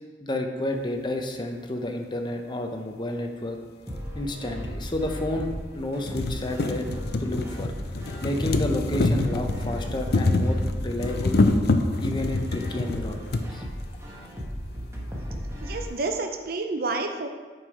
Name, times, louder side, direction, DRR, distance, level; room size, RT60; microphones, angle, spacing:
voice 1, 0.2-3.6 4.1-5.5 5.7-6.9 7.2-7.7 8.2-11.4 12.0-13.6, left 1 dB, 25° left, 4 dB, 0.7 m, -30 dB
sound 1, 3.9-4.0 5.0-5.1 5.5-5.6 5.9-13.5 14.4-14.5 14.7-14.8, left 2 dB, 60° left, 0.6 m, -26 dB
sound 2, 3.9-15.9, equal, 15° right, 1.3 m, -36 dB
voice 2, 15.6-17.3, right 3 dB, 55° right, 4 dB, 0.6 m, -29 dB
8.0 x 5.5 x 4.8 m, 1.4 s
head